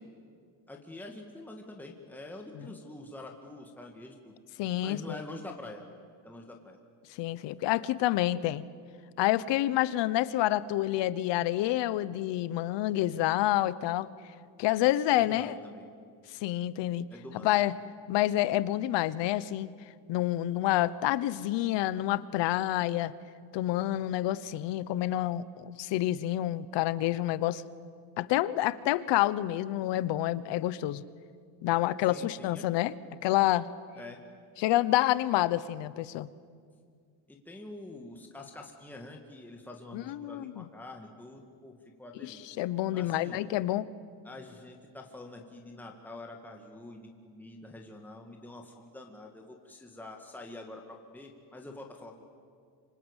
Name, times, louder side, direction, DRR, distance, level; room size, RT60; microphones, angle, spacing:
voice 1, 0.7-4.4 4.8-5.8 6.2-6.8 15.1-15.8 17.1-17.6 32.1-32.7 34.0-34.2 37.3-42.4 42.9-43.4 44.2-52.2, left 2 dB, 5° left, 1 dB, 1.9 m, -46 dB
voice 2, 4.6-5.2 7.1-8.6 9.2-14.1 14.6-15.5 16.3-17.0 17.3-17.7 18.1-19.7 20.1-23.1 23.5-27.6 28.2-31.0 31.6-32.9 33.2-33.7 34.6-36.3 39.9-40.6 42.2-43.9, left 14 dB, 70° left, 16 dB, 1.1 m, -28 dB
26.0 x 26.0 x 8.2 m, 2.2 s
cardioid pair, 155°, 45 cm